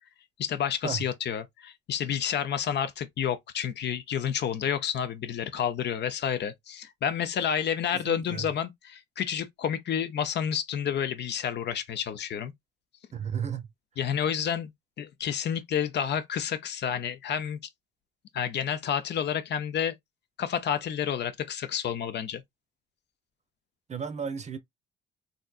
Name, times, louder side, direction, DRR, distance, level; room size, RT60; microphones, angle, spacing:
voice 1, 0.4-12.5 14.0-14.7 15.0-17.6 18.3-19.9 20.4-22.4, left 8 dB, 60° left, 0.6 m, -30 dB
voice 2, 7.9-8.4 13.1-13.7 23.9-24.6, right 7 dB, 35° right, 0.6 m, -33 dB
3.4 x 2.7 x 2.4 m
cardioid pair, 90°, 20 cm